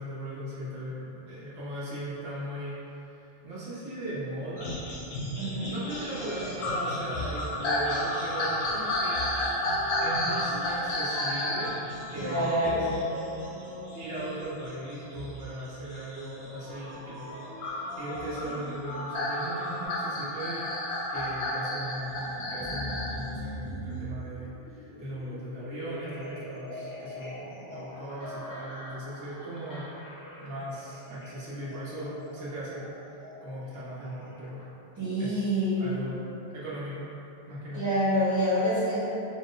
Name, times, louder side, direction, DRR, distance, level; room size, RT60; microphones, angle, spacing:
voice 1, 0.0-2.8 3.1-4.8 5.4-9.4 9.9-11.7 12.1-12.9 13.7-29.9 30.4-32.9 33.4-34.6 35.2-35.4 35.8-36.2 36.5-37.0 37.5-37.9, right 1 dB, 80° right, -9 dB, 1.1 m, -38 dB
sound 1, 4.6-17.0 17.6-23.2 23.7-23.8, left 1 dB, 85° left, 1.0 m, -32 dB
voice 2, 5.4-5.7 12.2-12.9 35.0-36.0 37.7-39.2, equal, 20° right, -12 dB, 0.9 m, -27 dB
sound 2, 5.8-15.8 16.5-19.9, equal, 45° right, 0.8 m, -44 dB
sound 3, 22.1-34.7, equal, 35° left, 0.3 m, -43 dB
4.5 x 2.1 x 3.7 m, 2.8 s
omnidirectional pair, 1.1 m